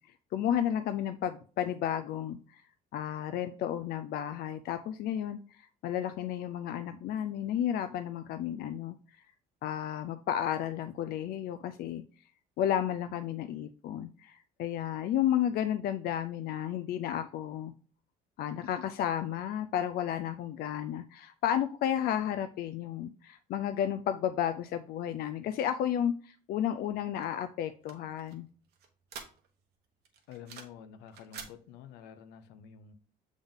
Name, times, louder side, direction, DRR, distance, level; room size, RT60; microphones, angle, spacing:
voice 1, 0.3-2.6 2.9-9.0 9.6-12.0 12.6-17.7 18.4-28.5, left 10 dB, 65° left, 0.4 m, -32 dB
sound 1, 27.2-29.7 30.1-30.8 31.1-31.5, right 6 dB, 70° right, 1.2 m, -48 dB
voice 2, 30.3-32.9, left 8 dB, 90° left, 0.8 m, -49 dB
7.0 x 3.7 x 3.6 m
cardioid pair, 110°, 17 cm